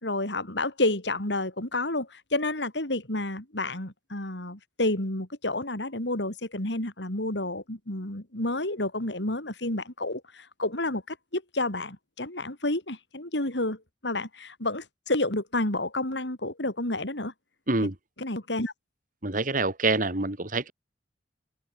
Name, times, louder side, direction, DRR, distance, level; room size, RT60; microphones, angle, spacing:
voice 1, 0.0-17.3 18.2-18.7, left 2 dB, 75° left, 4.8 m, -30 dB
voice 2, 19.2-20.7, right 3 dB, 50° right, 2.7 m, -26 dB
open air
head